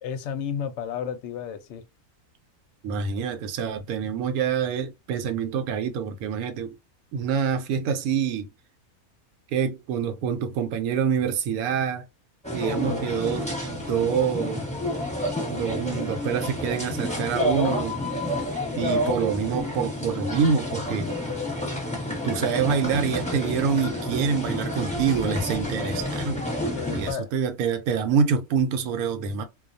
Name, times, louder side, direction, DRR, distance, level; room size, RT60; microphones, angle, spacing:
voice 1, 0.0-1.8 26.7-27.3, left 7 dB, 65° left, 0.8 m, -32 dB
voice 2, 2.8-6.8 7.1-8.5 9.5-12.0 12.5-14.6 15.5-18.0 18.8-21.2 22.2-26.5 26.9-29.4, right 7 dB, 80° right, 1.0 m, -26 dB
sound 1, 12.4-27.1, left 1 dB, 5° left, 0.8 m, -29 dB
2.3 x 2.2 x 2.5 m
omnidirectional pair, 1.5 m